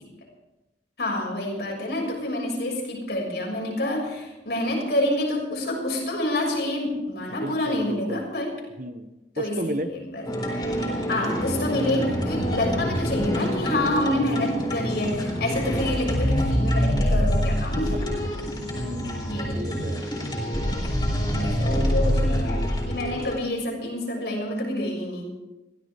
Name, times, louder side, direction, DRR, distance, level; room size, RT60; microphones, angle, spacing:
voice 1, 1.0-8.5 9.4-10.3 11.1-18.1 19.2-19.6 21.3-25.2, left 1 dB, 65° left, -1 dB, 6.6 m, -27 dB
voice 2, 7.4-8.2 8.8-9.1 9.4-9.9 11.7-12.2 18.8-20.1 21.6-22.0, right 1 dB, 45° right, 8 dB, 1.3 m, -34 dB
sound 1, 10.2-23.4, equal, 25° left, 4.0 m, -26 dB
23.0 x 16.5 x 3.7 m, 1.0 s
head